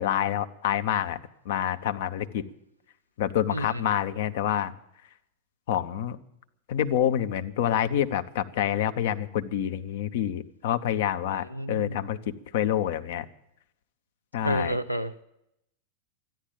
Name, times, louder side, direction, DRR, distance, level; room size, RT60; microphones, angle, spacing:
voice 1, 0.0-2.4 3.2-4.7 5.7-6.2 6.7-13.3 14.3-14.8, left 10 dB, 55° left, 10 dB, 0.8 m, -27 dB
voice 2, 3.5-3.8 11.5-12.0 14.4-15.2, equal, 90° left, 11 dB, 0.5 m, -30 dB
13.0 x 10.5 x 8.8 m, 0.80 s
figure-of-eight pair, 90°, 0 cm